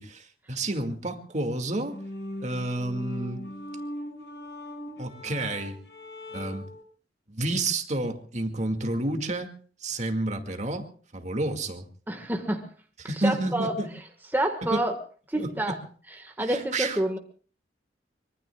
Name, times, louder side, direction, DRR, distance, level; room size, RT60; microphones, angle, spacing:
voice 1, 0.0-2.0 2.4-3.4 5.0-5.8 6.3-6.7 7.3-11.9 13.0-13.9 14.6-14.8 15.3-15.8 16.4-17.0, right 2 dB, 40° right, 5 dB, 2.2 m, -30 dB
sound 1, 1.8-6.8, left 1 dB, 75° left, 6.7 m, -40 dB
voice 2, 12.1-12.7 13.2-13.8 14.3-14.9 15.3-15.7 16.2-17.2, right 1 dB, 10° right, 4 dB, 1.6 m, -28 dB
25.0 x 23.5 x 2.4 m, 0.39 s
head